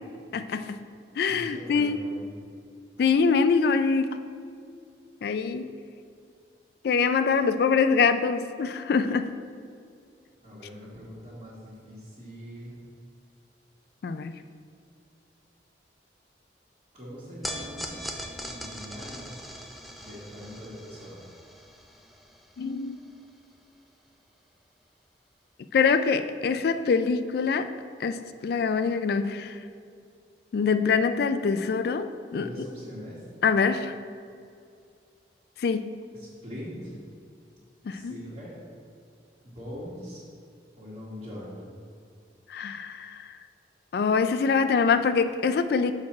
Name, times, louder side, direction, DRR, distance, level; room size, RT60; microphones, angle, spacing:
voice 1, 0.3-0.7 1.2-2.0 3.0-4.1 5.2-5.7 6.8-9.3 14.0-14.3 22.6-23.0 25.7-27.7 28.0-28.2 28.4-29.5 30.5-32.5 33.4-33.9 35.6-35.9 37.9-38.2 42.5-43.2 43.9-45.9, left 5 dB, 60° left, 10 dB, 0.3 m, -24 dB
voice 2, 1.3-2.4 10.4-12.8 16.9-17.9 18.4-19.4 20.0-21.2 32.3-33.3 36.1-36.9 37.9-38.6 39.4-40.2 40.8-41.6, equal, 35° right, -10 dB, 1.6 m, -42 dB
sound 1, 17.4-23.8, equal, ahead, 0.5 m, -41 dB
6.4 x 6.0 x 4.2 m, 2.3 s
head